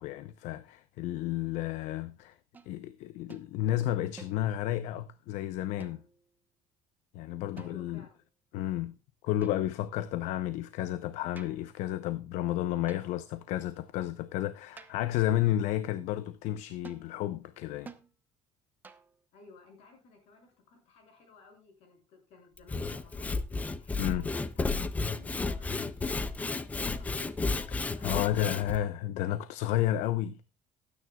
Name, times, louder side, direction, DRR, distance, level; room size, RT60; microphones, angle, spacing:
voice 1, 0.0-2.3 2.7-6.0 7.1-8.0 8.5-9.0 9.2-17.9 24.0-24.3 28.0-30.4, left 13 dB, 75° left, 0.8 m, -31 dB
sound 1, 2.5-2.8 3.3-3.5 4.2-4.7 5.8-6.3 7.6-8.1 9.4-9.9 11.4-11.7 12.9-13.3 14.8-15.2 16.8-17.1 17.9-18.1 18.8-19.2, right 4 dB, 15° right, 0.9 m, -51 dB
voice 2, 7.5-8.2 19.3-23.3 23.8-26.4 26.9-27.3 27.9-28.3, left 3 dB, 55° left, 6.7 m, -57 dB
Sawing / Wood, 22.6-28.8, left 3 dB, 10° left, 0.6 m, -33 dB
19.0 x 9.6 x 2.3 m
cardioid pair, 180°, 12 cm